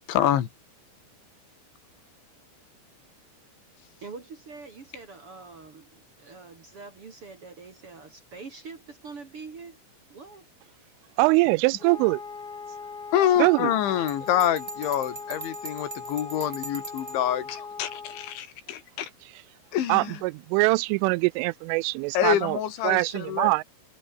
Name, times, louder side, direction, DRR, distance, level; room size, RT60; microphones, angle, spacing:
voice 1, 0.1-0.5 13.1-19.1 19.7-20.2 22.1-23.6, left 11 dB, 75° left, 4.5 m, -26 dB
voice 2, 4.0-9.8 10.1-10.5, right 4 dB, 40° right, 2.2 m, -44 dB
voice 3, 11.2-12.2 13.4-13.7 19.9-22.6 22.8-23.6, right 25 dB, 90° right, 3.1 m, -23 dB
Wind instrument woodwind instrument, 11.8-18.4, left 5 dB, 35° left, 1.8 m, -40 dB
Bell, 14.1-17.3, right 3 dB, 70° right, 0.5 m, -40 dB
omnidirectional pair, 5.5 m